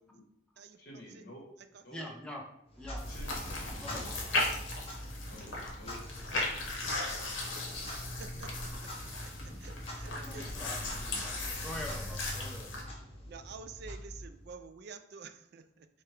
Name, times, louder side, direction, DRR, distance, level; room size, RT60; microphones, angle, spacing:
voice 1, 0.8-1.4 1.8-2.0 3.0-3.5 3.8-4.5 5.3-6.0, equal, 50° left, -2 dB, 1.3 m, -50 dB
voice 2, 1.9-2.4 2.8-3.0 3.7-4.2 10.1-12.7, left 1 dB, 5° left, 0 dB, 0.6 m, -44 dB
Clock, 2.7-14.6, equal, 30° left, 0.8 m, -44 dB
sound 1, 3.0-12.8, left 2 dB, 70° left, 1.0 m, -37 dB
voice 3, 7.9-8.5 9.6-10.7 13.3-15.9, right 5 dB, 55° right, 10 dB, 0.3 m, -49 dB
4.7 x 2.2 x 4.5 m, 0.80 s
head